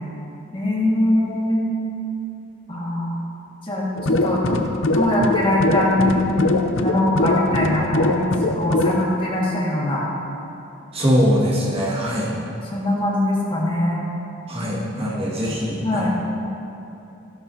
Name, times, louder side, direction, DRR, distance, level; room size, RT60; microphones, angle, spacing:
voice 1, 0.5-1.6 2.7-3.1 3.6-4.6 4.9-6.2 6.8-10.0 12.7-14.0 14.6-15.2 15.8-16.1, left 1 dB, 25° left, -5 dB, 1.9 m, -22 dB
sound 1, 4.0-9.0, left 2 dB, 85° left, 0.6 m, -22 dB
voice 2, 10.9-12.3 14.5-16.1, equal, 30° right, -6 dB, 1.9 m, -22 dB
14.5 x 12.0 x 2.8 m, 2.8 s
head